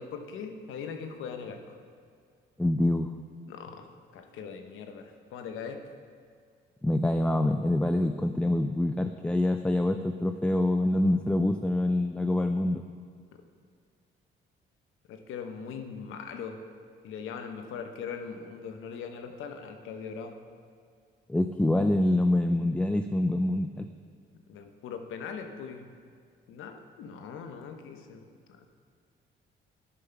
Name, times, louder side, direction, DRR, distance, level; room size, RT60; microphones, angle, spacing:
voice 1, 0.0-1.8 3.5-3.9 4.1-5.9 13.3-13.4 15.1-16.6 17.0-20.4 24.5-25.9 26.5-28.7, left 6 dB, 85° left, 6 dB, 0.9 m, -40 dB
voice 2, 2.6-3.1 6.8-12.8 21.3-23.9, left 1 dB, 5° left, 7 dB, 0.3 m, -26 dB
10.0 x 5.7 x 5.6 m, 2.2 s
cardioid pair, 90°, 20 cm